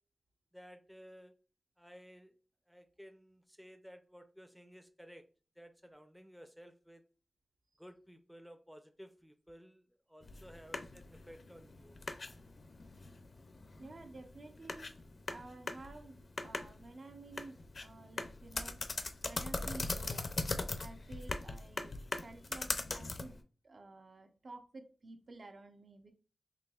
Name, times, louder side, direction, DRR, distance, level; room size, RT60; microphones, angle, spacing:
voice 1, 0.5-1.3 1.8-2.4 2.7-5.3 5.6-7.0 7.8-12.0, equal, ahead, 7 dB, 0.4 m, -55 dB
sound 1, 10.2-23.4, left 3 dB, 60° left, 0.4 m, -41 dB
voice 2, 13.8-14.9 15.3-18.8 19.3-20.3 20.8-23.4 23.6-26.1, right 2 dB, 60° right, 4 dB, 0.7 m, -52 dB
4.5 x 2.9 x 2.3 m, 0.38 s
cardioid pair, 65°, 0 cm